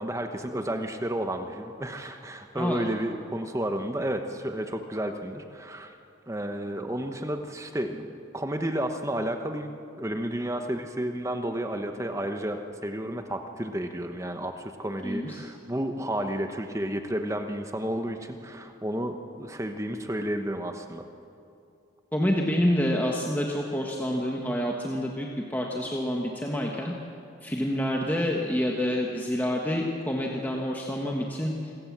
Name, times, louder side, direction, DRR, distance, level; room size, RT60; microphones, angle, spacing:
voice 1, 0.0-5.9 6.3-9.7 10.0-21.0, right 1 dB, 15° right, 6 dB, 0.9 m, -31 dB
voice 2, 2.5-2.9 15.0-15.4 22.1-26.9 27.4-31.7, equal, 10° left, -1 dB, 1.4 m, -28 dB
26.0 x 16.0 x 7.4 m, 2.6 s
head